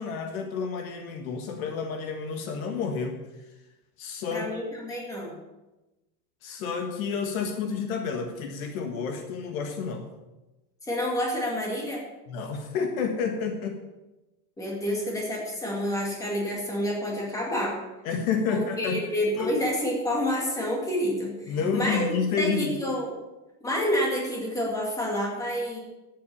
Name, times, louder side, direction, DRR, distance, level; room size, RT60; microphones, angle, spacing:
voice 1, 0.0-3.2 4.0-4.5 6.4-10.1 12.3-13.8 18.0-19.0 19.4-19.6 21.5-22.8, left 5 dB, 55° left, 5 dB, 1.6 m, -30 dB
voice 2, 4.3-5.4 10.8-12.0 14.6-17.8 18.5-22.1 22.4-23.1 23.6-25.8, equal, 5° left, -2 dB, 2.4 m, -28 dB
12.0 x 8.5 x 6.9 m, 1.0 s
supercardioid pair, 180°, 50 cm